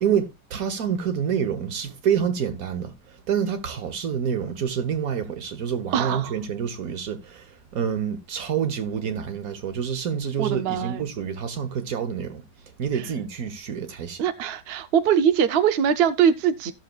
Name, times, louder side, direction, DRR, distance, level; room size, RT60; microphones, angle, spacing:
voice 1, 0.0-12.4 12.8-14.2, right 7 dB, 55° right, 1.5 m, -27 dB
voice 2, 5.9-6.3 10.4-11.0 14.2-16.7, right 8 dB, 75° right, 0.5 m, -22 dB
16.5 x 6.5 x 2.3 m
omnidirectional pair, 1.9 m